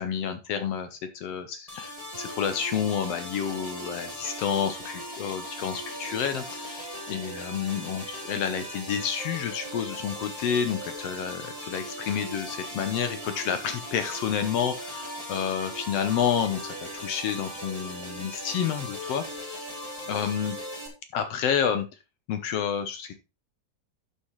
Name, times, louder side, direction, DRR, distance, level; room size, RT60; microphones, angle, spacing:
voice 1, 0.0-19.7 20.1-20.6 21.1-21.9 22.3-23.1, left 8 dB, 75° left, 9 dB, 1.4 m, -29 dB
sound 1, 1.7-20.9, equal, 15° left, 1.9 m, -38 dB
11.0 x 6.8 x 3.1 m, 0.28 s
omnidirectional pair, 3.7 m